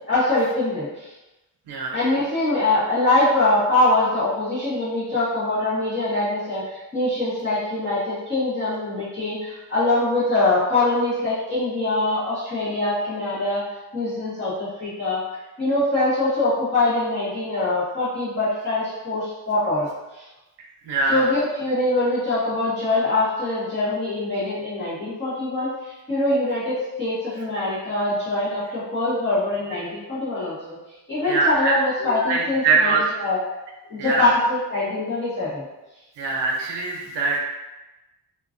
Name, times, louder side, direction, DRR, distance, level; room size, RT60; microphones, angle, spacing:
voice 1, 0.1-1.1 1.9-13.6 13.9-15.2 15.6-20.3 21.1-30.6 31.1-33.4 33.9-35.6, left 2 dB, 25° left, -12 dB, 1.4 m, -23 dB
voice 2, 1.7-2.0 20.8-21.2 31.3-31.7 32.0-33.1 34.0-34.3 36.2-37.4, right 4 dB, 85° right, -1 dB, 0.8 m, -22 dB
2.9 x 2.5 x 2.5 m, 1.0 s
wide cardioid pair, 160°, 40 cm